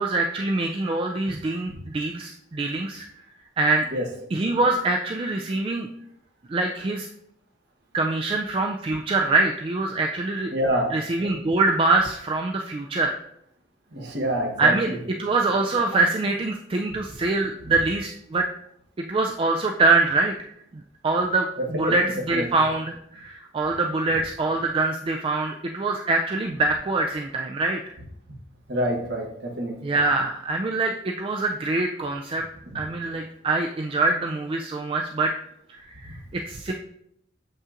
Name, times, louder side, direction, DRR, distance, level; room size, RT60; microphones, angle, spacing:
voice 1, 0.0-3.1 3.6-3.9 4.3-5.9 6.5-7.1 7.9-10.5 10.9-13.2 14.6-18.5 19.1-20.5 20.7-27.8 29.8-32.4 32.7-35.3 35.7-36.7, right 3 dB, 30° right, 3 dB, 0.3 m, -24 dB
voice 2, 10.5-10.9 13.9-14.7 21.7-21.9 22.3-22.5 28.7-29.7, equal, 65° right, 0 dB, 1.2 m, -26 dB
7.0 x 5.4 x 2.5 m, 0.74 s
head